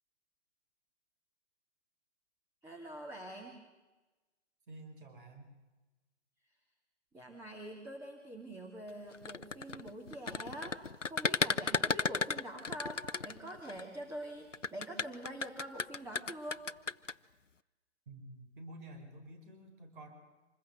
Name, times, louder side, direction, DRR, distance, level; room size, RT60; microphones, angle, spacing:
voice 1, 2.6-3.6 7.1-16.6, right 1 dB, 5° right, 1 dB, 2.4 m, -45 dB
voice 2, 4.7-5.5 18.1-20.1, right 1 dB, 45° right, 4 dB, 5.1 m, -50 dB
sound 1, 9.1-13.8 14.5-17.1, left 4 dB, 85° left, 0.8 m, -34 dB
26.5 x 21.5 x 8.0 m, 1.2 s
figure-of-eight pair, 130°, 36 cm